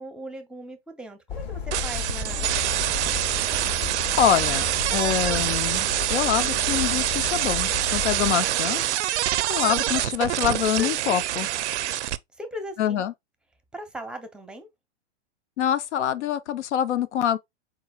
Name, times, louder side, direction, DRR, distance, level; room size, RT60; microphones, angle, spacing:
voice 1, 0.0-3.1 10.5-11.2 12.4-13.1 13.7-14.7, equal, 5° right, 0.6 m, -39 dB
sound 1, 1.3-8.3, left 8 dB, 50° left, 2.0 m, -34 dB
sound 2, 1.7-12.2, right 13 dB, 80° right, 0.5 m, -25 dB
voice 2, 4.2-4.7 4.9-8.8 9.5-11.5 12.8-13.1 15.6-17.4, left 9 dB, 85° left, 0.7 m, -25 dB
4.6 x 4.1 x 2.3 m
hypercardioid pair, 130°, 34 cm